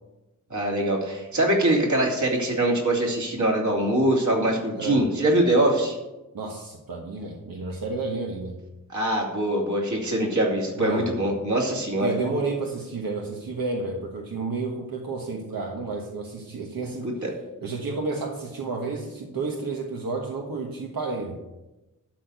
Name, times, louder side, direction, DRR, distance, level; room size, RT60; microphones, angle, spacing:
voice 1, 0.5-6.0 8.9-12.1 17.2-17.3, right 1 dB, 60° right, -1 dB, 2.7 m, -23 dB
voice 2, 6.3-8.6 10.7-11.1 12.0-17.1 17.6-21.4, right 3 dB, 90° right, 0 dB, 1.3 m, -31 dB
12.0 x 4.3 x 8.0 m, 1.0 s
wide cardioid pair, 100°, 34 cm